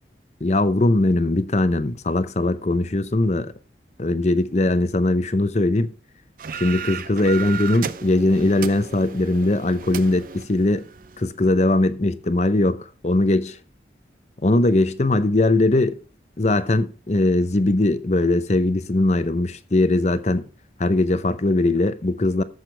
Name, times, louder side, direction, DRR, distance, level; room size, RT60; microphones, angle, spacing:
voice 1, 0.4-3.5 4.0-5.9 6.5-10.9 11.2-13.6 14.4-16.0 16.4-20.5 20.8-22.4, left 2 dB, 40° left, 0.7 m, -20 dB
sound 1, 6.4-11.3, right 7 dB, 50° right, 0.5 m, -35 dB
14.0 x 6.6 x 3.4 m
head